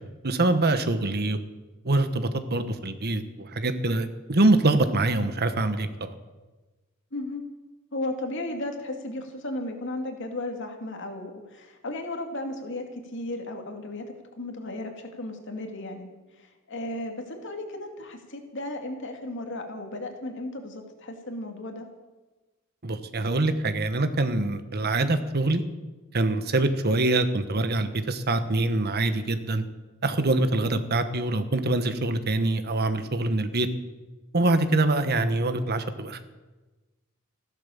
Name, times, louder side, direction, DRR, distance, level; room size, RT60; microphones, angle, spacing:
voice 1, 0.2-1.4 1.8-6.1 22.8-25.6 26.1-29.6 30.0-33.7 34.3-36.3, right 2 dB, 50° right, 10 dB, 1.3 m, -24 dB
voice 2, 7.1-7.4 7.9-12.8 13.1-14.1 14.4-16.1 16.4-21.9 30.7-30.8, left 1 dB, 60° left, 4 dB, 2.4 m, -35 dB
15.0 x 12.0 x 7.2 m, 1.2 s
head